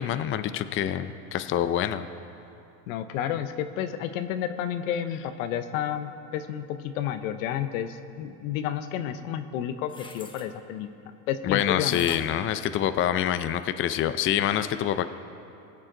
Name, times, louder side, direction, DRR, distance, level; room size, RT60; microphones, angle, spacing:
voice 1, 0.0-2.1 11.4-15.1, left 10 dB, 30° left, 11 dB, 0.5 m, -26 dB
voice 2, 2.9-10.9 11.3-12.1, left 10 dB, 80° left, 10 dB, 0.9 m, -31 dB
sound 1, 9.8-10.5 11.8-13.4 13.9-14.0, left 2 dB, 10° left, 1.0 m, -44 dB
21.5 x 7.6 x 3.8 m, 2.7 s
supercardioid pair, 105°, 40 cm